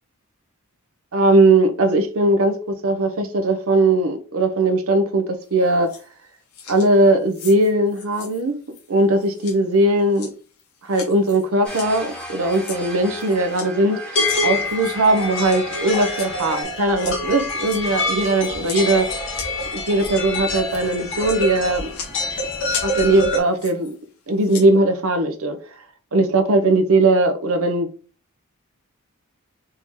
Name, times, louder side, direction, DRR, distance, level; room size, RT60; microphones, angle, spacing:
voice 1, 1.1-5.9 6.7-8.6 8.9-10.3 10.8-19.1 19.7-21.9 22.8-23.9 24.3-25.6 26.1-27.9, right 2 dB, 70° right, 0.8 m, -19 dB
sound 1, 5.4-6.2 6.5-13.7 14.2-15.6 16.0-20.3 20.6-24.0 24.3-24.7, left 7 dB, 75° left, 1.2 m, -39 dB
sound 2, 11.6-16.6, right 1 dB, 5° left, 1.1 m, -36 dB
sound 3, 14.1-23.4, left 2 dB, 55° left, 1.8 m, -26 dB
4.5 x 2.9 x 3.7 m
head